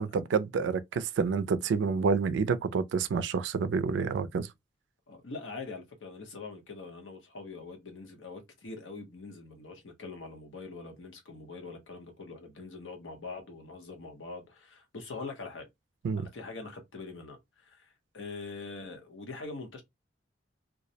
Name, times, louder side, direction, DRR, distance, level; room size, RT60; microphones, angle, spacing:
voice 1, 0.0-4.5 16.0-16.3, right 5 dB, 70° right, 0.3 m, -28 dB
voice 2, 5.1-15.7 16.2-19.8, left 3 dB, 80° left, 0.7 m, -43 dB
2.3 x 2.0 x 2.7 m
head